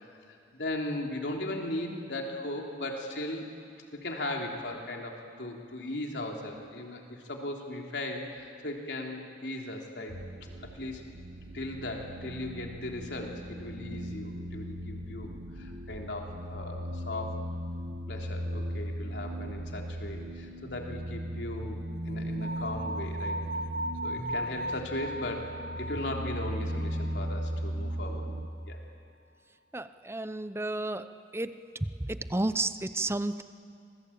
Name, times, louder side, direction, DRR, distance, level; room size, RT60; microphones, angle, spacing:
voice 1, 0.3-3.5 3.9-10.2 10.6-11.0 11.5-15.3 15.5-17.5 18.1-21.8 22.1-23.4 24.0-28.3 28.7-28.8, left 1 dB, 80° left, 1 dB, 3.4 m, -37 dB
sound 1, 10.1-28.5, equal, 60° right, 1.5 m, -37 dB
sound 2, 22.4-27.5, equal, 85° right, 1.3 m, -37 dB
voice 2, 29.7-31.1 31.3-31.5 32.0-33.4, right 2 dB, 15° right, 12 dB, 0.7 m, -32 dB
26.0 x 20.5 x 8.7 m, 2.5 s
head